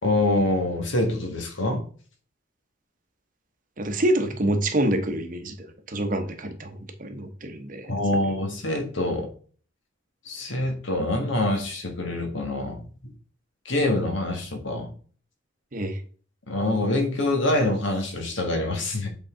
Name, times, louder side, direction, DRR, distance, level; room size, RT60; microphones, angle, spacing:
voice 1, 0.0-1.8 7.9-9.3 10.2-12.8 13.6-14.9 16.5-19.1, left 2 dB, 75° left, 4 dB, 1.6 m, -25 dB
voice 2, 3.8-7.9 15.7-16.0, right 1 dB, 45° right, 7 dB, 0.9 m, -27 dB
7.8 x 4.0 x 3.7 m, 0.43 s
head